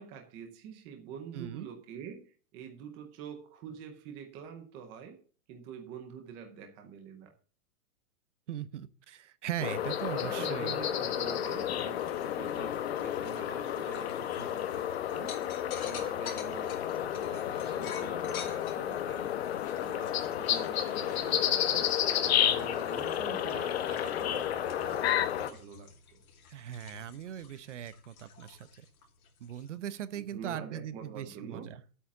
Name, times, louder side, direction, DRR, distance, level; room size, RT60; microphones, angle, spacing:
voice 1, 0.0-2.2 2.5-5.2 5.5-7.4 10.1-15.4 15.7-16.8 17.1-19.4 19.7-21.9 22.3-26.2 30.1-31.8, right 7 dB, 10° right, 0.6 m, -46 dB
voice 2, 1.3-1.7 8.5-10.8 26.5-28.9 29.4-31.8, right 10 dB, 50° right, 0.9 m, -39 dB
sound 1, 9.6-25.5, left 10 dB, 45° left, 1.1 m, -31 dB
sound 2, 11.4-29.8, left 7 dB, 70° left, 2.9 m, -50 dB
9.9 x 8.6 x 5.9 m
hypercardioid pair, 170°, 45 cm